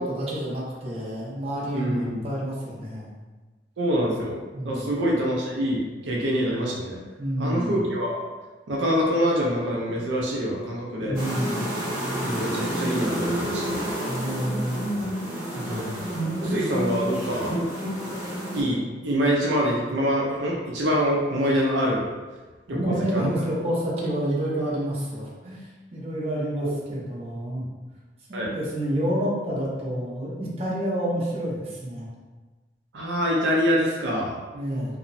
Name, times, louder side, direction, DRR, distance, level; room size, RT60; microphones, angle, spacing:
voice 1, 0.0-3.1 4.5-4.9 7.2-7.8 11.0-11.7 14.1-14.9 15.5-16.1 22.7-25.7 25.9-27.6 28.3-32.1 34.5-35.0, right 1 dB, 35° right, -6 dB, 0.6 m, -29 dB
voice 2, 1.7-2.2 3.8-7.0 7.4-8.2 8.7-11.1 12.2-13.9 15.7-15.8 16.4-17.6 18.0-18.1 18.5-22.0 22.7-23.3 26.6-26.7 28.3-28.5 32.9-34.4, equal, 80° right, -3 dB, 0.5 m, -25 dB
sound 1, 11.1-18.6, right 1 dB, 20° right, 1.0 m, -29 dB
2.8 x 2.0 x 2.5 m, 1.3 s
head